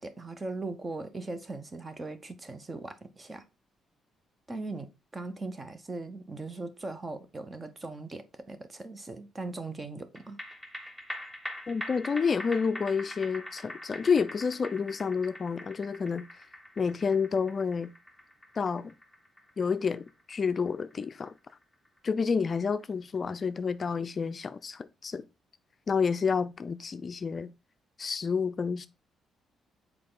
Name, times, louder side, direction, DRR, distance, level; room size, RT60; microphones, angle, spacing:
voice 1, 0.0-3.4 4.5-10.4, right 2 dB, 25° right, 0.9 m, -39 dB
sound 1, 10.2-22.8 23.2-23.3, left 1 dB, 5° right, 1.3 m, -44 dB
voice 2, 11.7-16.3 16.8-17.9 18.6-18.9 19.6-21.3 22.0-25.2 25.9-27.5 28.0-28.9, left 5 dB, 40° left, 0.4 m, -29 dB
6.7 x 4.4 x 3.7 m
cardioid pair, 90°, 0 cm